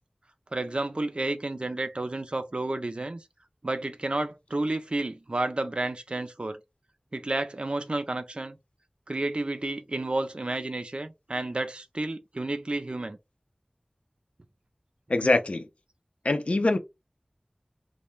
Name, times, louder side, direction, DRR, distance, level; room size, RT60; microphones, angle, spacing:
voice 1, 0.5-3.2 3.6-6.6 7.1-8.6 9.1-13.2, right 2 dB, 50° right, 0.4 m, -31 dB
voice 2, 15.1-15.7 16.2-16.8, left 2 dB, 65° left, 0.4 m, -23 dB
2.2 x 2.0 x 3.1 m
wide cardioid pair, 45°, 2 cm